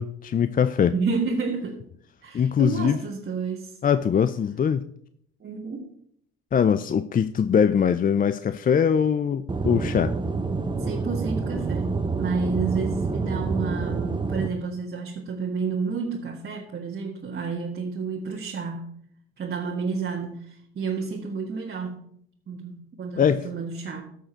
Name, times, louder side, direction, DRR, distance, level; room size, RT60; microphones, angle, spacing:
voice 1, 0.0-0.9 2.3-3.0 3.8-4.8 6.5-10.1 23.2-23.5, left 7 dB, 25° left, 0.5 m, -22 dB
voice 2, 0.9-1.8 2.2-3.7 5.4-5.9 10.8-19.0 19.4-22.1 22.5-24.1, right 5 dB, 35° right, 1.8 m, -30 dB
Aircraft / Engine, 9.5-14.5, right 4 dB, 15° right, 1.0 m, -27 dB
14.0 x 6.5 x 4.5 m
hypercardioid pair, 65°, 31 cm